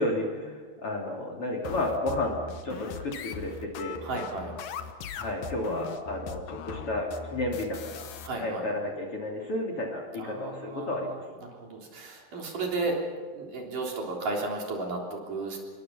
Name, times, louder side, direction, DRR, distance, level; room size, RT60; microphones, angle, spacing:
voice 1, 0.0-4.0 5.1-8.1 8.3-11.2, left 1 dB, 35° left, 2 dB, 3.5 m, -32 dB
sound 1, 1.6-8.3, left 6 dB, 65° left, 2.7 m, -40 dB
voice 2, 4.0-4.5 8.2-8.7 10.2-13.0 13.3-15.6, right 3 dB, 55° right, 0 dB, 4.9 m, -34 dB
27.0 x 23.0 x 5.7 m, 1.5 s
omnidirectional pair, 4.7 m